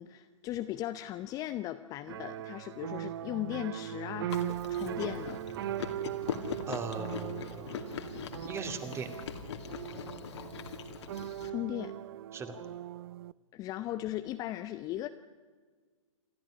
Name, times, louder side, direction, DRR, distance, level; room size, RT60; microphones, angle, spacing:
voice 1, 0.0-5.4 11.4-11.9 13.5-15.1, left 14 dB, 20° left, 10 dB, 0.7 m, -37 dB
sound 1, 2.1-13.3, right 12 dB, 45° right, 0.6 m, -39 dB
Chewing mastication, 4.3-11.5, left 7 dB, 55° left, 2.5 m, -41 dB
voice 2, 6.7-7.8 8.5-9.1 12.3-12.6, right 4 dB, 15° right, 8 dB, 2.3 m, -38 dB
27.5 x 13.0 x 9.9 m, 1.5 s
hypercardioid pair, 130°, 17 cm